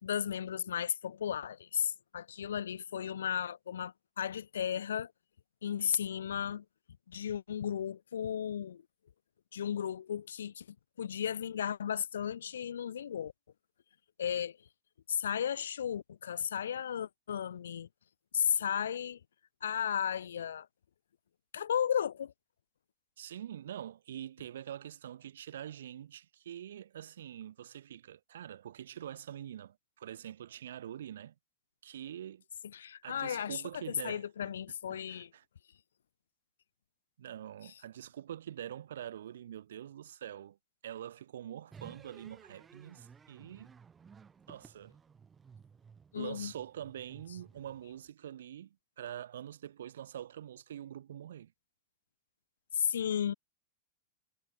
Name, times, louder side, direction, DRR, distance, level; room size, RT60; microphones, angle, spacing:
voice 1, 0.0-5.1 5.6-6.6 7.1-8.8 9.5-10.7 11.0-13.3 14.2-14.6 15.1-17.9 18.3-19.2 19.6-20.7 21.5-22.3 32.7-33.6 34.0-35.3 46.1-46.5 52.7-53.3, left 8 dB, 65° left, 1.1 m, -34 dB
voice 2, 23.2-31.3 31.8-32.4 33.0-34.3 34.9-35.4 37.2-40.6 40.8-43.7 44.5-44.9 46.1-51.5, right 10 dB, 60° right, 1.6 m, -45 dB
sound 1, 41.7-48.1, right 6 dB, 20° right, 1.5 m, -57 dB
figure-of-eight pair, 90°, 0 cm